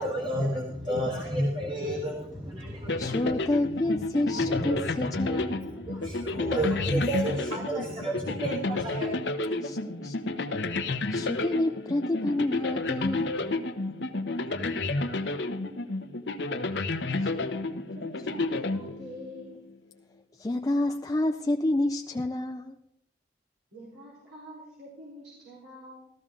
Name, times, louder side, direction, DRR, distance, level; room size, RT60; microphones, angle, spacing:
voice 1, 0.0-3.4 4.2-4.9 5.2-5.4 5.7-9.1, right 1 dB, 25° right, 1.6 m, -31 dB
sound 1, 2.9-19.4, left 2 dB, 85° left, 0.9 m, -31 dB
voice 2, 3.0-5.7 9.6-9.8 10.0-10.1 11.1-13.4 17.4-17.5 20.4-22.7, left 1 dB, 20° left, 0.4 m, -28 dB
voice 3, 17.9-19.6 23.7-26.1, left 1 dB, 80° right, 4.3 m, -45 dB
14.0 x 14.0 x 3.7 m
head